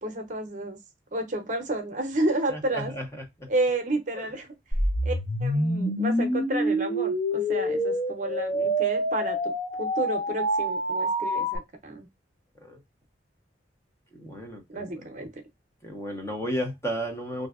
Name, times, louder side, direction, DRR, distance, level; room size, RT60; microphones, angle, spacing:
voice 1, 0.0-0.8 1.1-2.9 3.5-4.5 5.0-5.1 5.4-9.4 9.8-12.1 14.7-15.3, right 2 dB, 45° right, 0.7 m, -30 dB
voice 2, 2.5-3.1 4.2-4.3 12.6-12.8 14.1-14.9 15.8-17.5, equal, 15° left, 0.6 m, -33 dB
sound 1, 4.7-11.6, equal, 45° left, 0.8 m, -26 dB
3.2 x 2.6 x 2.4 m
head